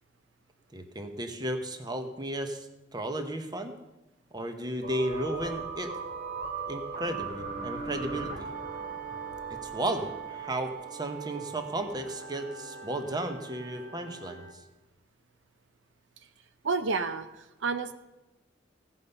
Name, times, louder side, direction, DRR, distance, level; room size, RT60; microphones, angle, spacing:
voice 1, 0.7-3.7 4.3-5.9 6.7-8.5 9.5-14.4, right 1 dB, 20° right, 6 dB, 1.0 m, -34 dB
sound 1, 4.8-14.5, right 4 dB, 50° right, 1.7 m, -39 dB
voice 2, 16.6-17.9, right 4 dB, 75° right, 10 dB, 0.6 m, -30 dB
16.5 x 5.5 x 6.7 m, 1.0 s
head